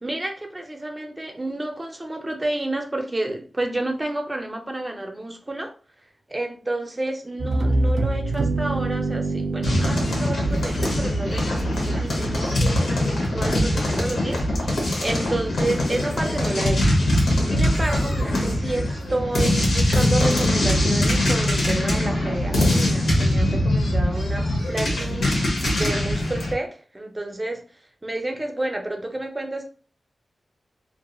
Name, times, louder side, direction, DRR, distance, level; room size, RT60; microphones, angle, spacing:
voice 1, 0.0-5.7 6.3-16.9 17.4-27.6 28.0-29.6, right 2 dB, 20° right, 3 dB, 0.5 m, -30 dB
sound 1, 7.4-12.2, right 2 dB, 85° right, 0.3 m, -26 dB
sound 2, 9.6-26.5, left 1 dB, 85° left, 0.9 m, -22 dB
2.7 x 2.5 x 2.3 m, 0.39 s
wide cardioid pair, 90°, 0 cm